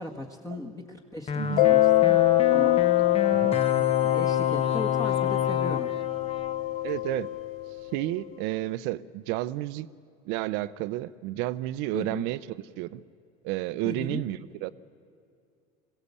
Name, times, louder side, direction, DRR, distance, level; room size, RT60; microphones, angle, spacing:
voice 1, 0.0-1.3 1.6-2.2 2.5-2.8 4.0-5.9 11.9-12.2 13.8-14.2, left 2 dB, 15° left, 1 dB, 1.6 m, -37 dB
sound 1, 1.3-7.4, left 7 dB, 30° left, 1.1 m, -30 dB
Mallet percussion, 1.6-7.9, left 16 dB, 85° left, 0.5 m, -24 dB
voice 2, 3.3-3.8 6.8-7.3 7.9-9.9 10.3-13.0 13.4-14.7, right 16 dB, 70° right, 16 dB, 0.7 m, -31 dB
21.5 x 16.5 x 8.3 m, 2.4 s
supercardioid pair, 100°, 19 cm